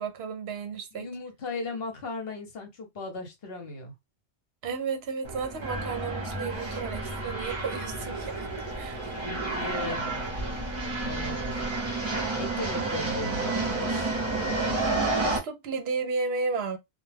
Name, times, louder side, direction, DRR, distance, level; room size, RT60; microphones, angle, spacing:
voice 1, 0.0-1.1 4.6-8.5 8.7-9.1 15.0-16.8, right 4 dB, 70° right, 0.8 m, -33 dB
voice 2, 0.9-3.9 9.2-10.2 11.0-11.4 12.3-14.1, left 3 dB, 60° left, 0.9 m, -37 dB
sound 1, 5.2-15.4, right 2 dB, 30° right, 0.7 m, -30 dB
2.2 x 2.2 x 3.2 m
omnidirectional pair, 1.2 m